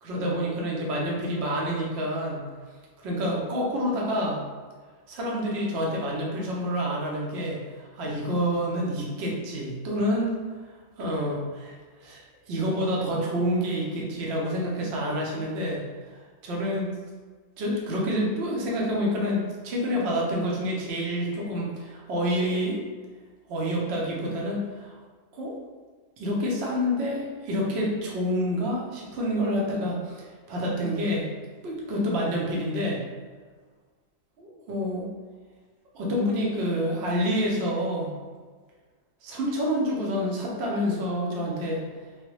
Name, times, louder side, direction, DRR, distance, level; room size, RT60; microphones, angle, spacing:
voice 1, 0.0-2.4 3.0-4.4 5.1-10.3 11.0-15.8 16.4-17.0 17.6-22.8 23.5-24.9 25.3-25.5 26.2-31.3 31.6-33.0 34.4-35.1 35.9-38.1 39.2-41.8, equal, 60° right, -3 dB, 0.8 m, -28 dB
3.1 x 2.1 x 3.0 m, 1.5 s
omnidirectional pair, 1.4 m